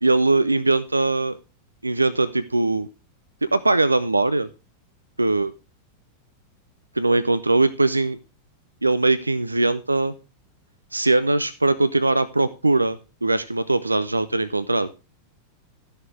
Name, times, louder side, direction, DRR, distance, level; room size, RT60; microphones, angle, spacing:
voice 1, 0.0-1.4 1.8-2.9 3.4-4.5 5.2-5.5 6.9-8.2 8.8-10.1 10.9-14.9, right 2 dB, 80° right, 14 dB, 0.5 m, -21 dB
12.5 x 6.6 x 4.6 m, 0.31 s
figure-of-eight pair, 90°, 0 cm